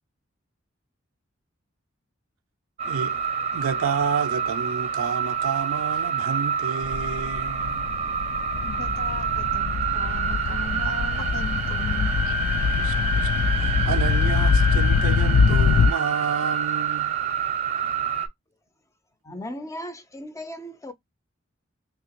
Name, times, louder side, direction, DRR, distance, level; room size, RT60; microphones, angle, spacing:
sound 1, 2.8-18.3, right 5 dB, 30° right, 0.6 m, -27 dB
voice 1, 2.9-3.2 3.5-7.9 12.3-12.4 12.8-17.2, right 6 dB, 85° right, 0.4 m, -30 dB
sound 2, 6.8-15.9, left 5 dB, 70° left, 0.3 m, -23 dB
voice 2, 8.6-12.1, left 4 dB, 85° left, 0.9 m, -37 dB
voice 3, 19.2-20.9, equal, 15° left, 0.5 m, -36 dB
3.4 x 2.8 x 2.9 m
head